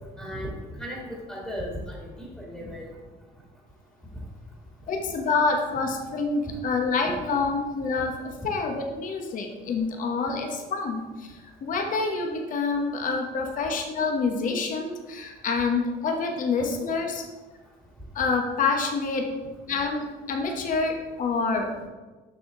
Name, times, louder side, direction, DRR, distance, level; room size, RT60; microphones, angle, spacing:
voice 1, 0.2-0.5 0.8-2.8, equal, 5° left, -3 dB, 1.9 m, -36 dB
voice 2, 4.9-17.2 18.1-19.3 19.7-21.7, left 4 dB, 50° left, 3 dB, 1.1 m, -27 dB
6.7 x 5.8 x 3.7 m, 1.3 s
cardioid pair, 110°, 17 cm